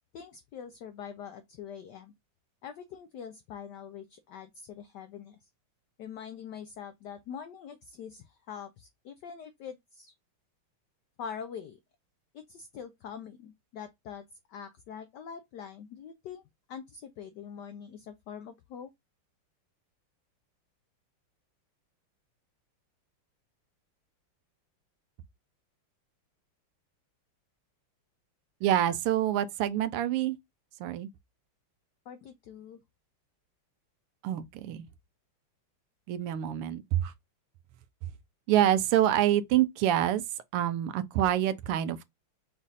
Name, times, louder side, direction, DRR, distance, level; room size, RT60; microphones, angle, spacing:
voice 1, 0.1-2.1 2.6-5.4 6.0-10.1 11.2-11.8 12.3-16.4 16.7-18.9 32.1-32.8, left 7 dB, 85° left, 0.9 m, -44 dB
voice 2, 28.6-30.4 30.8-31.1 34.2-34.9 36.1-37.1 38.5-40.2 40.5-42.0, right 12 dB, 90° right, 1.6 m, -26 dB
5.2 x 2.4 x 4.0 m
omnidirectional pair, 2.4 m